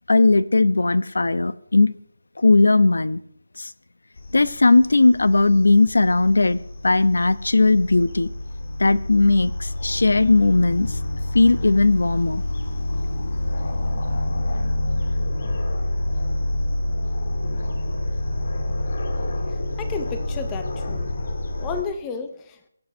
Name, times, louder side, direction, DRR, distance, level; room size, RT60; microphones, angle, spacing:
voice 1, 0.1-2.0 2.4-3.2 3.6-3.7 4.3-6.6 6.8-8.3 8.8-11.0 11.3-12.4, left 3 dB, 85° left, 16 dB, 1.0 m, -17 dB
sound 1, 4.2-21.8, left 1 dB, 35° left, 2.2 m, -27 dB
voice 2, 19.5-21.3 21.6-22.6, left 5 dB, 10° left, 7 dB, 0.6 m, -33 dB
23.5 x 7.9 x 5.7 m, 0.68 s
figure-of-eight pair, 180°, 0 cm